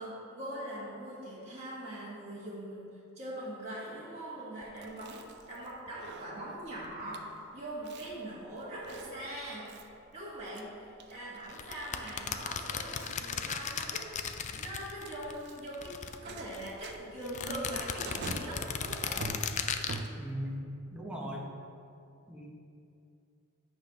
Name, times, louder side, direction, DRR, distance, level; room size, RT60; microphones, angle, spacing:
voice 1, 0.0-9.7 10.1-14.1 14.5-19.4 19.8-20.1, right 1 dB, 30° right, -8 dB, 1.6 m, -42 dB
Chewing mastication, 4.6-20.5, right 3 dB, 55° right, 0.5 m, -47 dB
sound 1, 11.5-15.3 15.6-16.7 17.2-20.0, left 7 dB, 35° left, 0.3 m, -36 dB
voice 2, 20.2-21.5 22.3-22.5, equal, 5° right, -2 dB, 0.9 m, -39 dB
8.9 x 3.5 x 5.8 m, 2.5 s
head